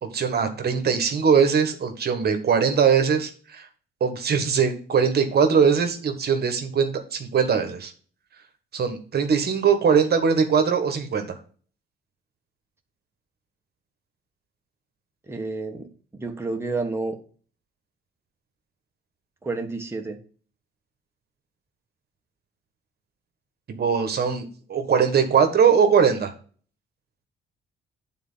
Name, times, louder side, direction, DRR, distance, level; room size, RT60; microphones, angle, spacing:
voice 1, 0.0-3.7 4.0-7.9 8.7-11.3 23.7-26.3, right 6 dB, 55° right, 6 dB, 1.5 m, -21 dB
voice 2, 15.3-17.2 19.4-20.2, right 3 dB, 10° right, 3 dB, 1.4 m, -30 dB
9.2 x 4.3 x 5.6 m, 0.42 s
cardioid pair, 90°, 20 cm